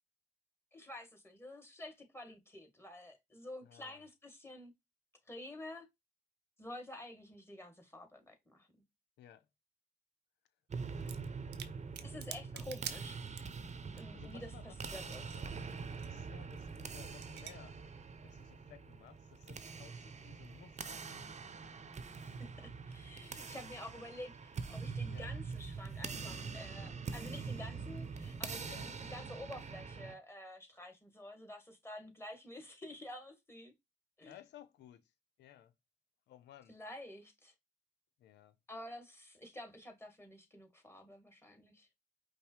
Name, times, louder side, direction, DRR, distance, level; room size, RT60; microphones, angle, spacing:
voice 1, 0.7-4.7 5.3-5.9 6.6-8.7 12.0-13.4 13.9-15.5 22.4-33.7 34.2-34.3 36.7-37.5 38.7-41.9, left 1 dB, 15° left, 1.9 m, -50 dB
voice 2, 3.6-4.1 9.2-9.5 10.7-11.4 12.5-12.6 14.1-15.5 16.0-17.8 18.2-21.0 25.1-25.3 28.6-28.9 34.2-35.1 35.4-35.7 36.3-36.8 38.2-38.6, left 11 dB, 85° left, 0.7 m, -58 dB
sound 1, 10.7-30.1, right 5 dB, 40° right, 0.8 m, -44 dB
sound 2, 11.0-11.3 11.5-13.7 14.0-14.1 14.2-15.5 15.7-16.1 16.7-16.9 17.2-17.5, right 10 dB, 80° right, 0.7 m, -46 dB
5.3 x 2.1 x 4.6 m
supercardioid pair, 55°, 17 cm